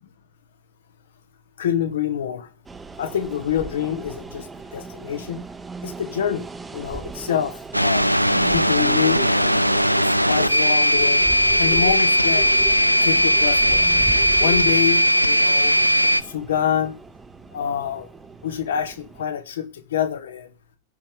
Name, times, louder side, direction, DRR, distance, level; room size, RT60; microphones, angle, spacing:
voice 1, 1.6-2.5 3.0-4.5 4.7-5.4 5.8-6.4 6.7-7.5 7.8-8.0 8.5-11.2 11.6-12.5 13.0-13.8 14.4-15.8 16.2-16.9 17.5-18.1 18.4-20.5, left 9 dB, 60° left, 10 dB, 1.3 m, -26 dB
sound 1, 2.7-19.3, right 4 dB, 15° right, 0.9 m, -37 dB
sound 2, 7.7-16.2, equal, 90° right, 0.4 m, -18 dB
16.0 x 5.6 x 3.6 m, 0.32 s
figure-of-eight pair, 90°, 0 cm